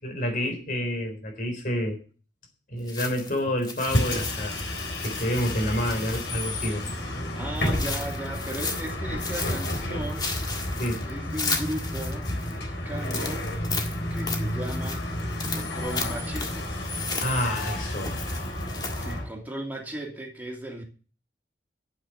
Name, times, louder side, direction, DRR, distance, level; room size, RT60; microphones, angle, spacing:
voice 1, 0.0-2.0 2.7-4.6 5.0-6.8 10.8-11.1 17.1-18.2, equal, 50° left, 3.8 m, -28 dB
sound 1, 2.9-7.0 7.6-8.9 9.2-12.5 13.0-19.2, left 4 dB, 25° left, 1.6 m, -35 dB
Bus, 3.8-19.3, left 1 dB, 85° left, 4.0 m, -31 dB
voice 2, 7.3-13.5 14.1-15.1 15.5-16.7 18.6-20.8, right 1 dB, 10° right, 2.7 m, -37 dB
9.0 x 7.8 x 7.9 m
head